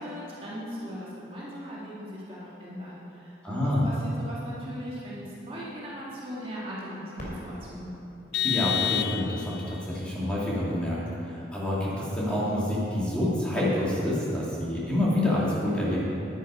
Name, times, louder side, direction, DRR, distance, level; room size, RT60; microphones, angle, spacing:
voice 1, 0.0-7.9, equal, 30° right, -7 dB, 1.9 m, -39 dB
voice 2, 3.4-3.9 8.4-11.0 11.3-16.0, left 1 dB, 5° left, -8 dB, 2.1 m, -27 dB
Fireworks, 7.1-9.9 10.6-10.7 11.4-11.8 13.7-13.9, equal, 45° left, 2.7 m, -45 dB
Vehicle horn car horn honking, 8.3-9.7, left 10 dB, 65° left, 0.3 m, -28 dB
10.0 x 9.9 x 4.9 m, 2.9 s
head